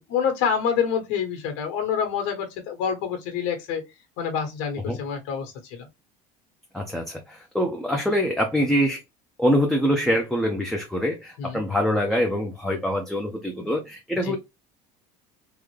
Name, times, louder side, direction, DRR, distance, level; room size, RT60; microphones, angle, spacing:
voice 1, 0.0-3.8 4.2-5.9 11.4-11.6 14.2-14.4, left 7 dB, 85° left, 1.2 m, -27 dB
voice 2, 6.7-9.0 9.4-14.4, equal, ahead, 0.4 m, -24 dB
3.6 x 2.1 x 3.1 m
cardioid pair, 160°, 15 cm